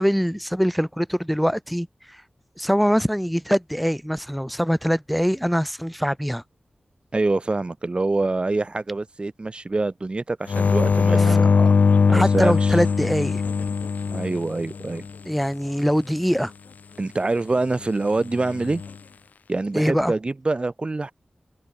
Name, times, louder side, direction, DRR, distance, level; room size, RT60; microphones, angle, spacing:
voice 1, 0.0-2.2 2.6-6.4 11.2-13.4 15.2-16.5 19.7-20.1, equal, ahead, 6.5 m, -23 dB
voice 2, 7.1-11.5 12.1-12.8 14.1-15.0 17.0-18.8 19.5-21.1, right 2 dB, 40° right, 4.7 m, -25 dB
sound 1, 10.5-15.1 18.4-18.9, left 5 dB, 85° left, 1.9 m, -20 dB
wide cardioid pair, 75°, 3 cm